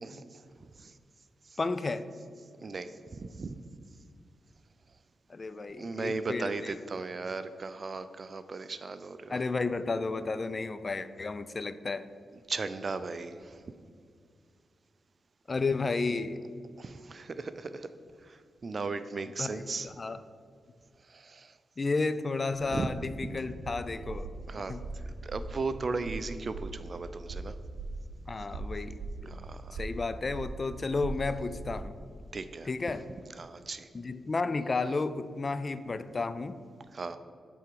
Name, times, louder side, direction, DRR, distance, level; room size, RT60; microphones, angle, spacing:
voice 1, 0.0-0.9 1.5-1.6 2.6-3.5 5.8-9.4 12.5-13.6 16.8-17.9 18.2-19.9 21.0-21.6 22.7-22.9 23.2-23.4 24.5-24.8 25.2-27.5 29.3-29.8 32.3-32.7 33.3-33.9 36.9-37.2, right 3 dB, 50° right, 12 dB, 0.4 m, -37 dB
voice 2, 1.6-2.1 5.3-6.7 9.3-12.1 15.5-16.4 19.4-20.2 21.8-24.3 24.5-24.8 28.3-29.4 29.7-32.0 32.7-33.0 33.9-36.6, left 3 dB, 45° left, 13 dB, 0.4 m, -32 dB
sound 1, 22.8-32.0, right 3 dB, 80° right, 0.9 m, -41 dB
8.1 x 3.5 x 4.8 m, 2.2 s
supercardioid pair, 45°, 0 cm